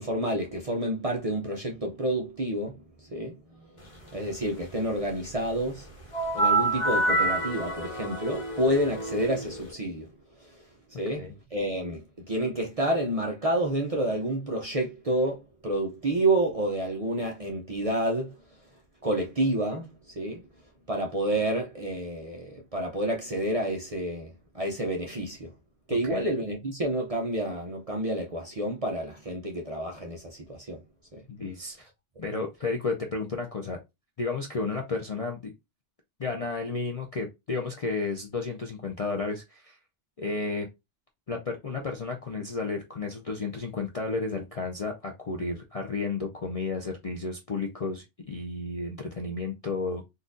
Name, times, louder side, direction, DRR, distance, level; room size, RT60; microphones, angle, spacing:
voice 1, 0.0-3.7 4.1-5.9 6.3-10.1 10.4-18.4 19.0-20.4 20.9-25.5 25.9-30.8 31.1-31.2, right 1 dB, 40° right, 0.5 m, -29 dB
sound 1, 6.1-9.7, right 2 dB, 30° left, 1.1 m, -27 dB
voice 2, 31.3-31.9 32.2-33.8 34.2-35.5 36.2-39.8 40.2-40.7 41.3-50.0, left 3 dB, 45° left, 0.4 m, -32 dB
4.0 x 2.4 x 2.5 m
omnidirectional pair, 1.2 m